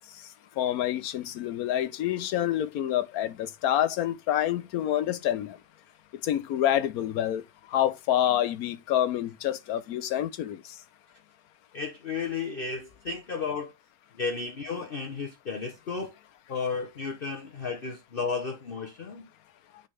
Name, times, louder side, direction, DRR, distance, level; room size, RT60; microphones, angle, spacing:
voice 1, 0.6-5.6 6.2-7.4 7.7-10.6, left 11 dB, 65° left, 1.1 m, -27 dB
voice 2, 11.7-13.7 14.2-16.1 16.5-19.3, left 5 dB, 40° left, 0.9 m, -33 dB
8.8 x 4.0 x 3.3 m
omnidirectional pair, 1.9 m